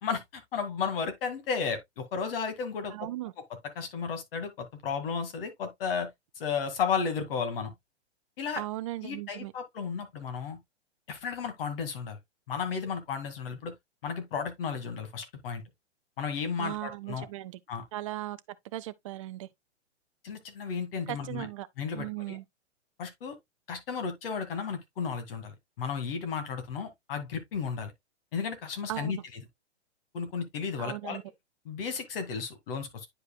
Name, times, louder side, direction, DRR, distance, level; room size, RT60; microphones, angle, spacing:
voice 1, 0.0-2.9 3.8-6.1 6.4-7.7 8.4-8.6 9.0-10.6 11.1-12.2 12.5-13.7 14.0-15.6 16.2-17.3 17.7-17.8 20.2-21.5 21.8-22.4 23.0-23.4 23.7-27.9 28.3-29.2 30.1-31.2 31.7-33.1, left 6 dB, 55° left, 2.1 m, -33 dB
voice 2, 2.9-3.3 8.6-9.5 16.6-17.6 17.9-18.4 18.6-19.5 21.1-21.7 21.9-22.4 28.9-29.2 30.8-31.2, right 16 dB, 30° right, 0.4 m, -37 dB
9.9 x 4.9 x 2.2 m
hypercardioid pair, 125°, 35 cm